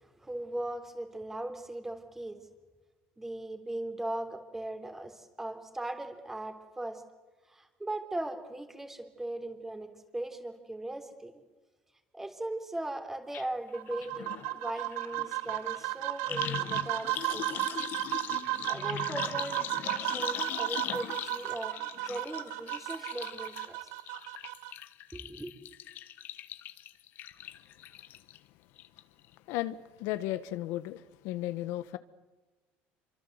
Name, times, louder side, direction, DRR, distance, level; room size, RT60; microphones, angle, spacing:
voice 1, 0.0-2.4 3.2-7.0 7.5-11.3 12.1-17.5 18.7-23.8 25.1-25.5, right 1 dB, 10° right, 3.4 m, -39 dB
sound 1, 13.3-13.4 13.7-28.4 28.8-29.2 29.5-29.6, left 12 dB, 45° left, 1.2 m, -41 dB
sound 2, 13.7-24.7, right 20 dB, 75° right, 0.8 m, -34 dB
voice 2, 29.5-32.0, left 15 dB, 70° left, 1.2 m, -35 dB
28.5 x 25.0 x 8.1 m
cardioid pair, 155°, 5 cm